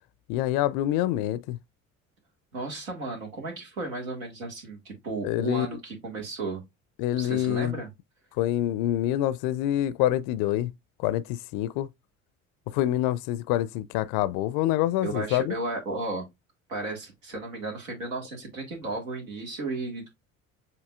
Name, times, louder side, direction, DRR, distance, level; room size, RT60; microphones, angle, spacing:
voice 1, 0.3-1.6 5.2-5.7 7.0-7.8 8.4-10.7 11.0-11.9 12.7-15.5, left 13 dB, 55° left, 0.5 m, -26 dB
voice 2, 2.5-6.6 7.2-7.9 15.0-16.3 16.7-20.1, right 2 dB, 80° right, 1.8 m, -34 dB
7.3 x 2.8 x 2.4 m
figure-of-eight pair, 55°, 40 cm